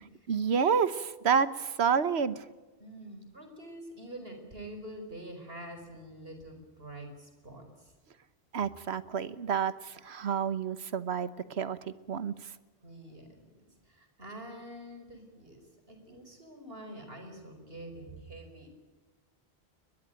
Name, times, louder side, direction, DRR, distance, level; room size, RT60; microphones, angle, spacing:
voice 1, 0.3-2.5 8.5-12.3, right 6 dB, 90° right, 15 dB, 1.3 m, -29 dB
voice 2, 2.8-7.9 12.8-13.4 13.8-15.6 15.9-18.7, right 1 dB, 70° right, 6 dB, 5.1 m, -46 dB
22.0 x 21.0 x 9.0 m, 1.2 s
omnidirectional pair, 1.1 m